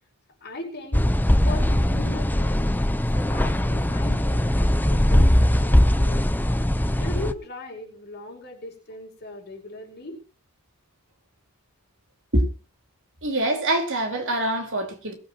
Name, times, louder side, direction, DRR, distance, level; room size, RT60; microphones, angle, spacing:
voice 1, 0.4-1.1 1.4-2.8 3.1-6.3 6.9-10.2, left 2 dB, 45° left, 5.0 m, -38 dB
sound 1, 0.9-7.3, left 1 dB, 10° left, 0.7 m, -20 dB
voice 2, 13.2-15.1, right 1 dB, 60° right, 4.1 m, -24 dB
21.5 x 8.1 x 4.7 m
head